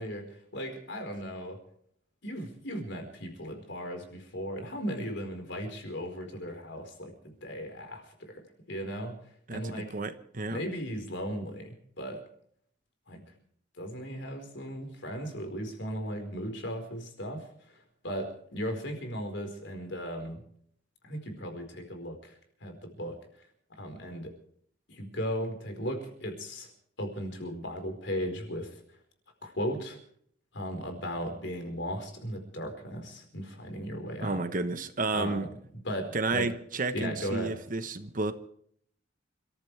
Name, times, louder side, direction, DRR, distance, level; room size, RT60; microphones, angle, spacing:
voice 1, 0.0-1.6 2.2-9.2 9.5-10.0 10.5-12.2 13.1-13.2 13.8-20.4 21.0-23.2 23.7-24.3 24.9-26.7 27.0-28.8 29.4-30.0 30.5-34.4 35.1-35.5 35.8-36.5 36.9-37.5, equal, 65° left, 5 dB, 4.7 m, -37 dB
voice 2, 9.5-10.6 34.2-35.5 36.1-38.3, right 3 dB, 45° right, 10 dB, 1.2 m, -31 dB
29.5 x 14.5 x 3.4 m, 0.64 s
head